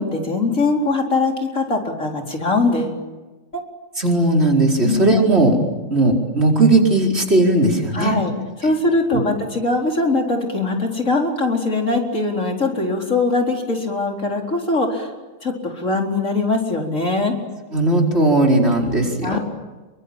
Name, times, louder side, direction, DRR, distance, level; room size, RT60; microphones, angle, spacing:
voice 1, 0.0-3.0 4.8-5.2 7.9-8.3 8.6-15.1 15.4-17.4 19.2-19.4, left 3 dB, 60° left, 1 dB, 4.6 m, -21 dB
voice 2, 4.0-5.6 5.9-8.2 9.1-9.2 17.7-19.4, right 2 dB, 45° right, 0 dB, 5.0 m, -17 dB
28.0 x 24.0 x 8.8 m, 1.2 s
omnidirectional pair, 1.5 m